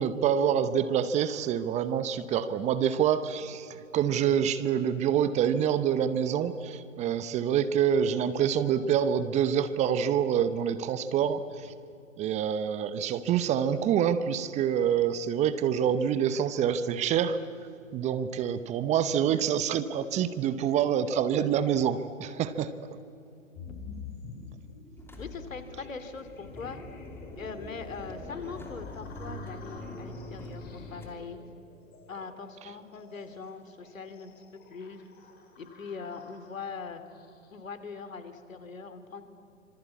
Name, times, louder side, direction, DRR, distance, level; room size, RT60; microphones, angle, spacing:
voice 1, 0.0-11.4 12.2-17.4 17.9-22.7, right 8 dB, 15° right, 13 dB, 0.8 m, -26 dB
sound 1, 23.5-37.6, left 4 dB, 25° left, 5.0 m, -49 dB
sound 2, 25.0-31.1, left 1 dB, 5° left, 3.1 m, -43 dB
voice 2, 25.2-26.8 27.4-31.4 32.1-35.0 35.6-37.0 37.5-39.2, left 5 dB, 75° left, 10 dB, 3.1 m, -41 dB
26.5 x 26.5 x 8.4 m, 2.7 s
figure-of-eight pair, 120°, 40 cm